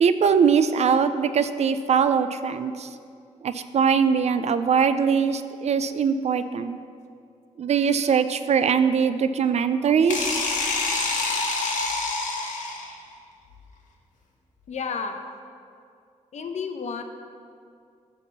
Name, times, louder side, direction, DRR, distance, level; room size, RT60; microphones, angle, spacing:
voice 1, 0.0-2.9 3.4-6.8 7.6-10.4, right 6 dB, 60° right, 11 dB, 0.4 m, -21 dB
sound 1, 10.1-13.0, left 3 dB, 85° left, 1.0 m, -26 dB
voice 2, 14.7-15.2 16.3-17.0, left 5 dB, 65° left, 6 dB, 0.7 m, -31 dB
10.0 x 3.5 x 7.0 m, 2.3 s
cardioid pair, 80°, 13 cm